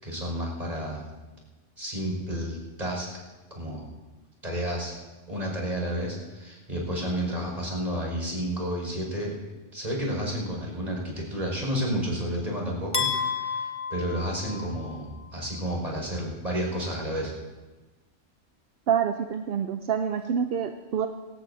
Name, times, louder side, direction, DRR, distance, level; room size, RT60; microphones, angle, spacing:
voice 1, 0.0-1.1 1.8-3.1 3.5-3.9 4.4-4.9 5.3-9.3 9.7-17.3, equal, 30° right, -2 dB, 5.6 m, -31 dB
sound 1, 12.9-15.1, left 5 dB, 10° left, 1.0 m, -31 dB
voice 2, 18.9-21.1, right 8 dB, 55° right, 6 dB, 0.8 m, -27 dB
22.5 x 18.0 x 2.7 m, 1.2 s
omnidirectional pair, 1.3 m